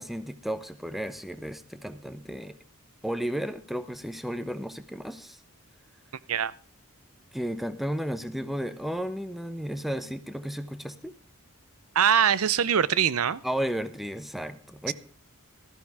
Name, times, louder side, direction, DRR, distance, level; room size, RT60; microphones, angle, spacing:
voice 1, 0.0-2.6 3.0-5.4 7.3-11.1 13.4-14.9, equal, ahead, 12 dB, 0.8 m, -33 dB
voice 2, 11.9-13.4 14.9-15.0, right 8 dB, 70° right, 19 dB, 0.6 m, -23 dB
14.5 x 13.5 x 3.5 m, 0.42 s
head